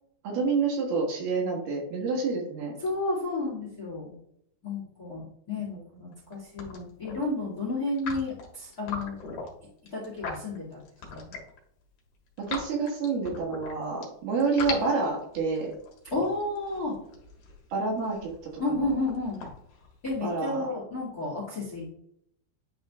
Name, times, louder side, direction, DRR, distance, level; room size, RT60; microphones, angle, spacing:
voice 1, 0.2-2.7 6.0-6.1 12.4-15.7 17.7-18.3 20.2-20.7, right 4 dB, 65° right, -1 dB, 3.2 m, -28 dB
voice 2, 2.8-4.1 4.6-9.1 9.9-10.8 11.1-11.3 16.1-16.9 18.6-19.4 20.0-21.8, left 2 dB, 35° left, -4 dB, 1.6 m, -31 dB
sound 1, 6.1-6.3 6.6-7.2 7.9-11.6 12.0-14.0 14.4-20.5, left 4 dB, 55° left, 2.9 m, -40 dB
11.0 x 3.8 x 3.6 m, 0.72 s
omnidirectional pair, 5.2 m